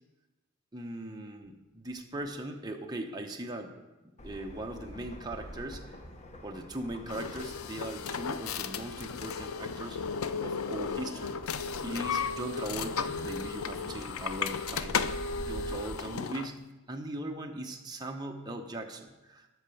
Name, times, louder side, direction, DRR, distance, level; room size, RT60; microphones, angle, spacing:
voice 1, 0.7-3.8 4.2-6.0 6.4-11.4 11.8-15.0 15.4-16.6 16.9-19.5, right 1 dB, 20° right, 2 dB, 0.9 m, -39 dB
sound 1, 4.2-16.0, equal, 35° left, 0.9 m, -46 dB
sound 2, 7.1-16.5, left 5 dB, 80° left, 0.5 m, -35 dB
12.5 x 4.3 x 7.0 m, 1.1 s
head